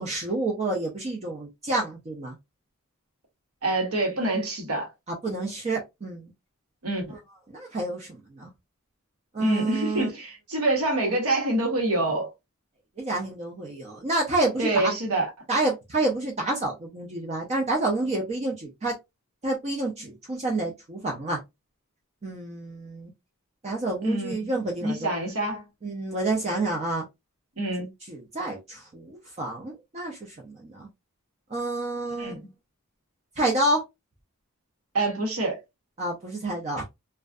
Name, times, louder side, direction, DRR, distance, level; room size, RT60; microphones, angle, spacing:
voice 1, 0.0-2.3 5.2-6.3 7.5-8.1 8.4-8.5 9.3-10.1 13.0-14.9 15.5-18.9 19.4-21.4 22.2-23.1 23.6-25.0 25.8-27.0 28.1-29.1 29.4-30.2 30.4-30.9 31.5-32.3 33.4-33.8 36.0-36.8, right 2 dB, 30° right, 0.4 m, -28 dB
voice 2, 3.6-4.9 6.8-7.2 9.4-12.3 14.6-15.3 24.0-24.3 24.8-25.6 27.6-27.9 32.2-32.5 34.9-35.6, right 2 dB, 80° right, 1.0 m, -26 dB
2.5 x 2.2 x 2.3 m
head